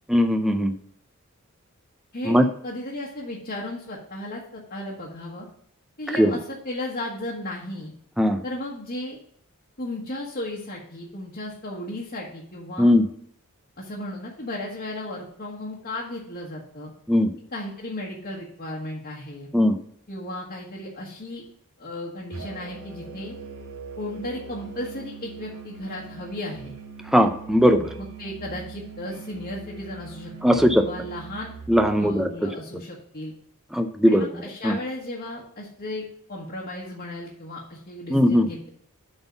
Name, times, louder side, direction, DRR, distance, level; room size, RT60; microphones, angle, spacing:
voice 1, 0.1-0.7 2.3-2.5 6.2-6.3 8.2-8.4 12.8-13.0 17.1-17.3 19.5-19.8 27.1-27.9 30.4-30.9 31.7-32.3 33.7-34.3 34.6-34.7 38.1-38.5, equal, ahead, 6 dB, 0.5 m, -19 dB
voice 2, 2.1-5.5 6.0-7.9 8.4-9.2 9.8-12.9 13.8-16.9 17.5-19.5 20.1-21.4 21.8-23.3 24.0-26.7 28.0-31.5 31.9-33.3 34.1-38.7, left 1 dB, 45° left, -5 dB, 1.4 m, -35 dB
Musical instrument, 22.3-32.2, right 5 dB, 75° right, 2.6 m, -41 dB
7.8 x 4.0 x 6.9 m, 0.64 s
head